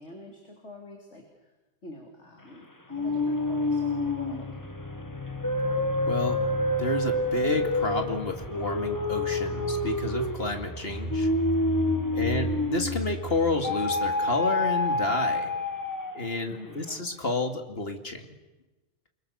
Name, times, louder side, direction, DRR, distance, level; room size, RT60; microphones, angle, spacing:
voice 1, 0.0-1.5 1.8-4.5 12.3-12.7 16.5-17.3, left 1 dB, 75° left, 1 dB, 3.7 m, -46 dB
sound 1, 2.9-13.1 13.6-16.4, left 2 dB, 15° left, 1.5 m, -28 dB
voice 2, 6.1-6.4 6.8-11.3 12.1-15.5 16.1-18.2, left 2 dB, 55° left, 5 dB, 2.8 m, -30 dB
sound 2, 10.5-15.1, right 1 dB, 55° right, 3.0 m, -35 dB
29.0 x 23.5 x 7.1 m, 1.1 s
omnidirectional pair, 1.2 m